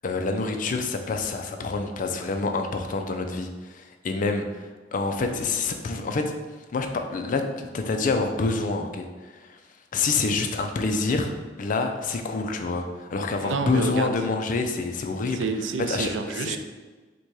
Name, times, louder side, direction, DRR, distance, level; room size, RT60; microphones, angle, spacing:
voice 1, 0.0-6.3 6.7-9.6 9.9-11.3 11.6-15.4 15.9-16.6, left 3 dB, 45° left, 5 dB, 0.4 m, -27 dB
voice 2, 13.4-14.2 15.3-16.6, right 4 dB, 85° right, 8 dB, 0.4 m, -29 dB
4.1 x 2.2 x 4.6 m, 1.3 s
head